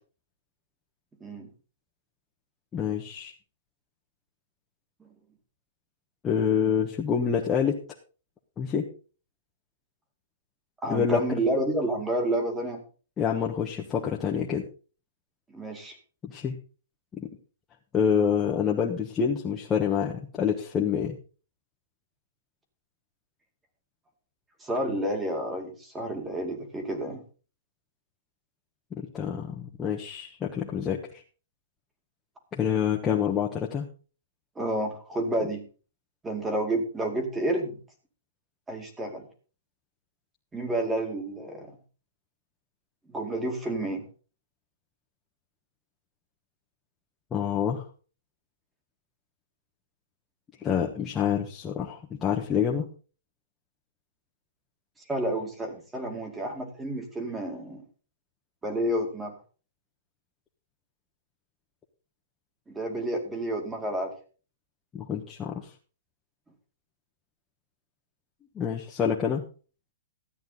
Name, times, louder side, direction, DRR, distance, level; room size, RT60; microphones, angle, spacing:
voice 1, 2.7-3.3 6.2-7.8 8.6-8.9 10.9-11.2 13.2-14.6 16.2-16.6 17.1-17.3 17.9-21.2 28.9-31.2 32.5-33.9 47.3-47.8 50.6-52.9 64.9-65.7 68.5-69.4, left 7 dB, 15° left, -1 dB, 1.3 m, -27 dB
voice 2, 10.8-12.8 15.5-16.0 24.6-27.2 34.6-35.6 36.2-37.8 38.7-39.3 40.5-41.7 43.1-44.0 55.1-57.8 58.6-59.3 62.7-64.1, right 1 dB, 10° right, 4 dB, 2.3 m, -30 dB
13.5 x 9.2 x 4.0 m, 0.37 s
hypercardioid pair, 155°, 0 cm